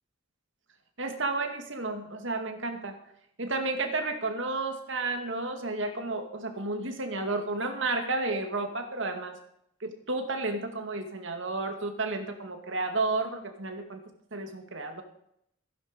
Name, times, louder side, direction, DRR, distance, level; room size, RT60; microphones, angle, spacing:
voice 1, 1.0-3.0 3.4-9.4 9.8-14.0 14.3-15.0, right 3 dB, 70° right, 5 dB, 2.2 m, -32 dB
15.5 x 10.5 x 5.2 m, 0.73 s
head